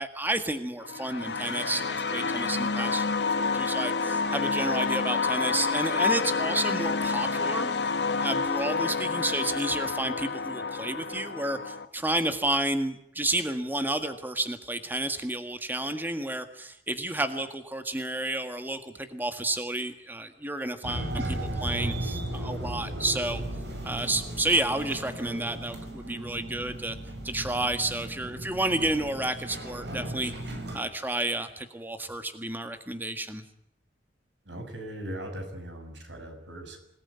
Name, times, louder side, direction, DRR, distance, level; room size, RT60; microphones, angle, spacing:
voice 1, 0.0-3.1 3.4-7.7 8.2-23.4 23.8-27.0 27.2-30.3 30.7-33.4, right 1 dB, 10° right, 8 dB, 1.7 m, -31 dB
sound 1, 0.8-11.9, left 4 dB, 70° left, 1.6 m, -28 dB
sound 2, 20.8-30.8, right 1 dB, 70° right, 5.9 m, -36 dB
voice 2, 34.4-36.8, right 1 dB, 90° right, 6 dB, 6.6 m, -39 dB
27.0 x 19.0 x 9.7 m, 0.75 s
head